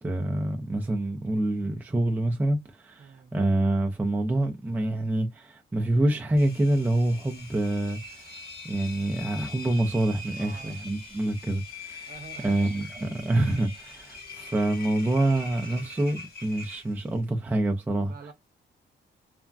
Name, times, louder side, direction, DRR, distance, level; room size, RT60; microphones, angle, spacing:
voice 1, 0.0-8.0 8.6-12.1 12.4-18.1, right 1 dB, 10° right, 0.4 m, -26 dB
voice 2, 3.0-3.3 10.4-10.8 12.0-12.9 18.0-18.3, right 5 dB, 50° right, 0.8 m, -46 dB
Engine, 6.4-17.2, left 2 dB, 50° left, 1.2 m, -43 dB
3.3 x 2.1 x 2.4 m
wide cardioid pair, 160°, 20 cm